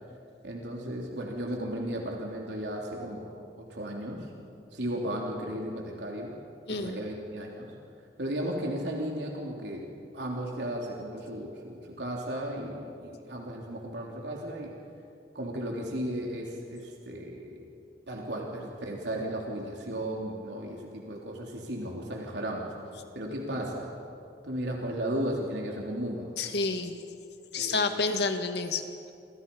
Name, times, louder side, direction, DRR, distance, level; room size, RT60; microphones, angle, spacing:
voice 1, 0.4-3.4 3.7-4.3 4.7-6.3 6.7-7.7 8.2-9.9 10.1-14.7 15.4-17.7 18.1-22.7 23.1-23.9 24.4-26.4 27.5-28.1, right 1 dB, 80° right, -1 dB, 3.5 m, -35 dB
voice 2, 26.4-27.0 27.5-28.8, left 4 dB, 70° left, 6 dB, 2.2 m, -29 dB
28.5 x 26.0 x 5.6 m, 2.5 s
head